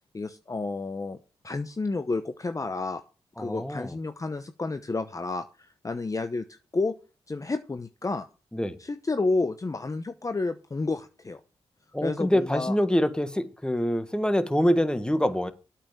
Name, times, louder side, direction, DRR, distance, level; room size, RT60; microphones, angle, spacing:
voice 1, 0.1-1.2 1.4-3.0 3.4-6.5 6.7-6.9 7.3-8.2 8.8-11.4 12.0-12.8, left 3 dB, 30° left, 0.9 m, -30 dB
voice 2, 3.4-4.0 8.5-8.8 11.9-15.5, equal, 5° left, 1.6 m, -25 dB
8.7 x 5.8 x 7.3 m
supercardioid pair, 45°, 11 cm